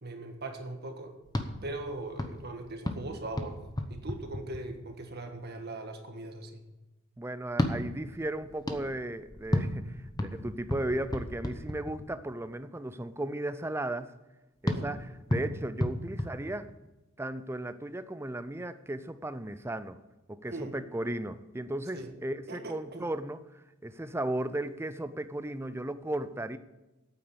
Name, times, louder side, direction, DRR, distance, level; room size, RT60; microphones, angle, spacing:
voice 1, 0.0-1.1 1.6-3.6 3.9-6.5 14.7-14.9 20.5-20.7 21.9-22.1 22.5-23.1, right 2 dB, 45° right, 1.5 m, -40 dB
sound 1, 1.2-5.1 7.5-12.3 14.7-17.1, left 1 dB, 20° left, 0.9 m, -34 dB
voice 2, 7.2-14.1 14.6-16.7 17.2-20.0 20.3-26.6, right 1 dB, 10° right, 0.4 m, -35 dB
9.1 x 8.7 x 7.1 m
head